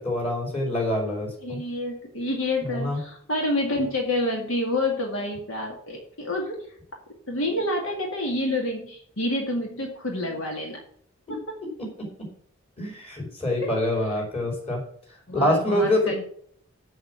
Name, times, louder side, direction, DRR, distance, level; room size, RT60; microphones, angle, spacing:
voice 1, 0.0-1.6 2.6-3.0 11.3-11.4 11.8-12.3 12.8-14.8 15.3-16.2, left 1 dB, 30° left, 0 dB, 4.6 m, -26 dB
voice 2, 1.4-6.7 7.3-10.8 15.3-16.2, left 1 dB, 70° left, 1 dB, 2.1 m, -28 dB
7.6 x 7.3 x 7.5 m, 0.62 s
head